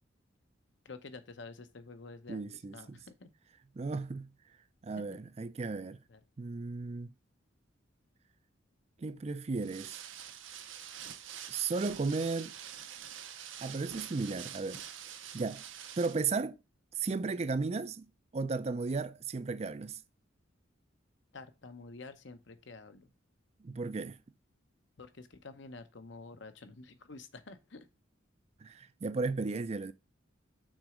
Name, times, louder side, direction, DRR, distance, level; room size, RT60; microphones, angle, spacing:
voice 1, 0.8-2.5 2.7-3.3 6.1-6.2 21.3-23.1 25.0-27.9, left 3 dB, 65° left, 0.8 m, -49 dB
voice 2, 2.3-3.0 3.7-4.3 4.8-6.0 6.4-7.1 9.0-10.0 11.5-12.5 13.6-14.8 15.1-15.6 16.0-16.6 16.9-20.0 23.6-24.2 28.6-29.9, right 4 dB, 30° right, 0.4 m, -35 dB
sound 1, 9.6-16.3, right 9 dB, 75° right, 0.7 m, -46 dB
6.2 x 4.1 x 4.9 m
head